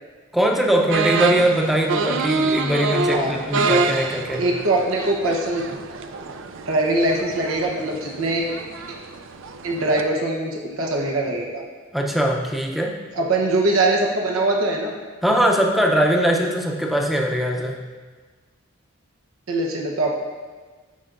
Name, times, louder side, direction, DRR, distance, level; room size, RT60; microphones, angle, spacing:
voice 1, 0.3-4.5 11.9-13.0 15.2-17.8, equal, ahead, 0 dB, 0.6 m, -21 dB
sound 1, 0.9-10.0, right 4 dB, 65° right, 0.4 m, -26 dB
voice 2, 4.4-5.8 6.7-8.5 9.6-11.6 13.1-14.9 19.5-20.1, right 2 dB, 90° right, 0 dB, 1.0 m, -22 dB
12.5 x 5.5 x 2.6 m, 1.4 s
head